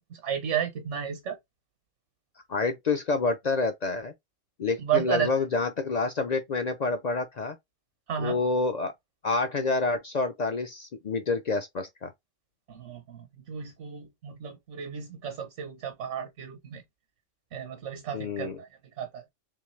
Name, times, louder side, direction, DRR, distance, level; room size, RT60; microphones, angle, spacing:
voice 1, 0.0-1.4 4.8-5.3 8.1-8.4 12.7-16.8 17.5-18.7 19.0-19.2, right 8 dB, 70° right, 1.2 m, -32 dB
voice 2, 2.5-4.1 4.6-7.6 8.2-8.9 9.2-12.1 18.1-18.6, left 3 dB, 60° left, 0.4 m, -28 dB
3.7 x 3.1 x 3.1 m
omnidirectional pair, 1.3 m